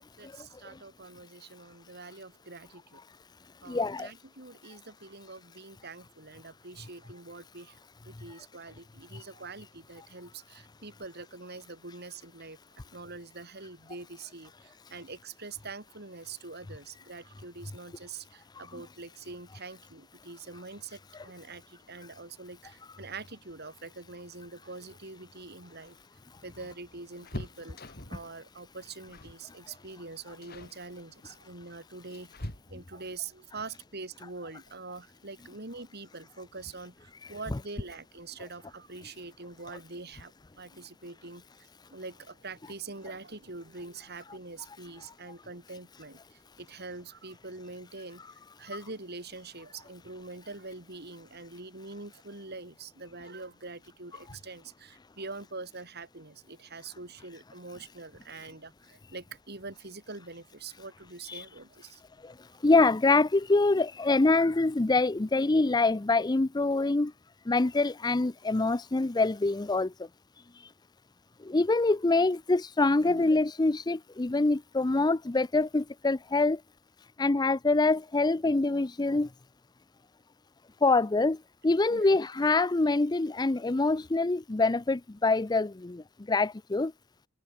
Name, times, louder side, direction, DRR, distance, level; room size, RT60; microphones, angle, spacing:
voice 1, 0.2-3.0 3.6-7.8 8.0-12.6 12.9-26.0 26.4-27.8 28.1-48.2 48.6-62.0 72.9-73.2 81.9-82.1, right 3 dB, 50° right, 6.3 m, -44 dB
voice 2, 3.7-4.1 9.1-9.2 61.3-61.4 62.2-62.3 62.6-67.1 67.5-69.9 71.4-76.6 77.2-79.3 80.8-81.4 81.6-86.9, left 3 dB, 20° left, 0.5 m, -25 dB
sound 1, 25.7-28.3 29.1-29.5 29.7-30.0 30.4-30.8 31.6-33.1 34.8-34.9 35.3-35.4 36.6-37.0 37.3-37.4 37.7-37.9, left 1 dB, 50° left, 4.6 m, -44 dB
head